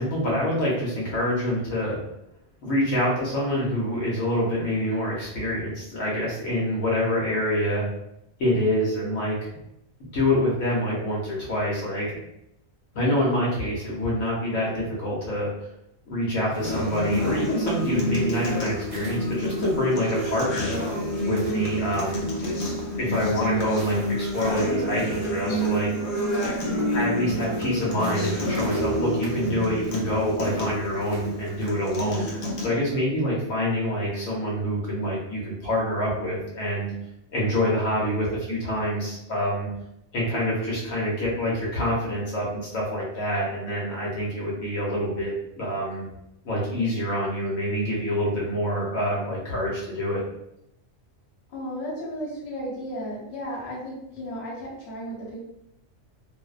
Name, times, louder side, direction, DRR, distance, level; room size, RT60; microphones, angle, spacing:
voice 1, 0.0-2.0 2.6-7.8 8.4-9.4 10.1-12.1 12.9-15.5 16.1-20.7 21.2-22.3 23.0-25.9 26.9-32.2 32.6-36.9 37.3-39.7 40.1-46.1 46.4-50.2, equal, 75° left, -5 dB, 1.1 m, -26 dB
sound 1, 16.5-31.7, right 1 dB, 65° right, 0.6 m, -45 dB
Acoustic guitar, 16.6-32.6, equal, 55° left, 0.6 m, -28 dB
voice 2, 51.5-55.4, equal, 40° left, -7 dB, 1.0 m, -34 dB
2.6 x 2.0 x 2.3 m, 0.80 s
omnidirectional pair, 1.4 m